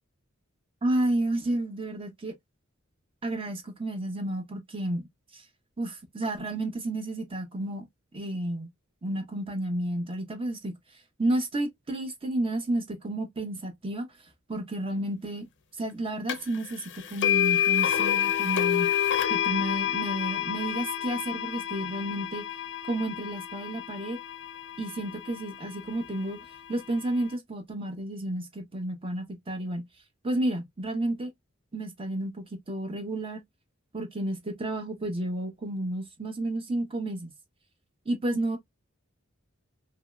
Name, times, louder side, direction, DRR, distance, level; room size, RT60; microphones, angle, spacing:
voice 1, 0.8-2.3 3.2-5.1 5.3-5.4 5.8-7.8 8.1-8.7 9.0-10.8 11.2-14.1 14.5-15.5 15.8-18.9 19.3-22.4 22.8-24.2 24.8-26.4 26.7-29.9 30.2-31.3 31.7-33.4 33.9-37.3 38.1-38.6, right 1 dB, 25° right, 0.8 m, -31 dB
sound 1, 16.3-16.4 17.2-25.3, left 10 dB, 60° left, 0.5 m, -28 dB
3.0 x 2.7 x 2.2 m
head